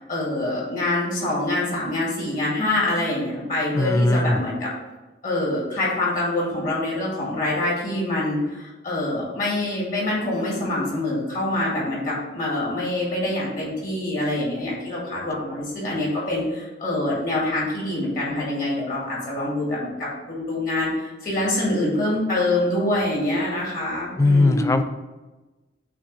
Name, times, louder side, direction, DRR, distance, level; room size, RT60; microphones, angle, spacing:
voice 1, 0.0-4.7 5.2-24.8, left 1 dB, 50° left, -5 dB, 2.2 m, -25 dB
voice 2, 3.8-4.4 24.2-24.8, left 2 dB, 15° left, 8 dB, 0.3 m, -19 dB
8.6 x 3.0 x 5.0 m, 1.1 s
head